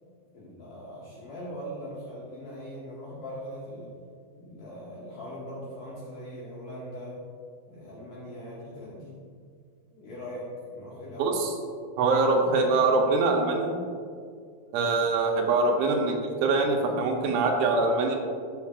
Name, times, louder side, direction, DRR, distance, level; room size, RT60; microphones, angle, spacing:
voice 1, 0.0-3.9 4.4-7.2 7.7-9.1 9.9-11.4, equal, 65° left, -7 dB, 2.1 m, -40 dB
voice 2, 11.2-11.5 12.0-13.8 14.7-18.2, right 3 dB, 80° right, 2 dB, 3.1 m, -24 dB
12.0 x 7.5 x 2.4 m, 2.2 s
omnidirectional pair, 5.4 m